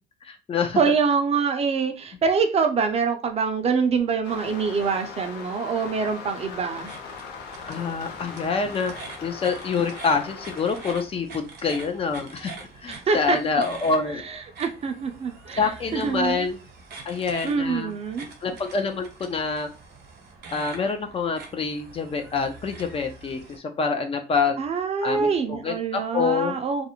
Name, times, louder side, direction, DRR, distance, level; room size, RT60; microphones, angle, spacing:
voice 1, 0.2-0.8 7.7-8.9 9.2-12.5 12.8-14.2 15.6-16.6 17.0-17.9 18.4-19.7 20.5-24.6 25.0-26.6, left 5 dB, 35° left, 6 dB, 0.5 m, -26 dB
voice 2, 0.8-6.9 12.9-13.4 14.2-16.5 17.4-18.3 24.6-26.9, right 5 dB, 40° right, 6 dB, 0.5 m, -25 dB
sound 1, 4.2-11.0, left 5 dB, 85° left, 0.5 m, -39 dB
sound 2, 6.7-23.6, right 4 dB, 70° right, 0.8 m, -44 dB
2.4 x 2.0 x 2.8 m, 0.31 s
cardioid pair, 110°, 17 cm